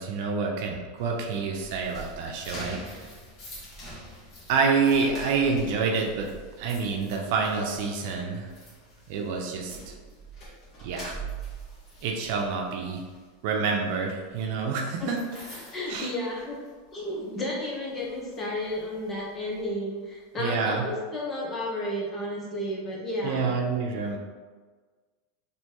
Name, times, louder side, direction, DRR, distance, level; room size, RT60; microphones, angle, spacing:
voice 1, 0.0-3.0 4.5-6.3 6.6-8.5 9.1-9.9 10.8-11.2 12.0-13.0 13.4-15.2 15.5-16.1 20.4-20.8 23.2-24.2, right 5 dB, 60° right, 1 dB, 0.7 m, -28 dB
sound 1, 1.0-16.9 17.2-17.5 18.0-19.6, right 2 dB, 40° left, 1.4 m, -45 dB
voice 2, 15.7-16.6 16.9-23.5, left 1 dB, 25° left, -3 dB, 1.2 m, -32 dB
4.3 x 3.1 x 3.0 m, 1.5 s
supercardioid pair, 120°, 0 cm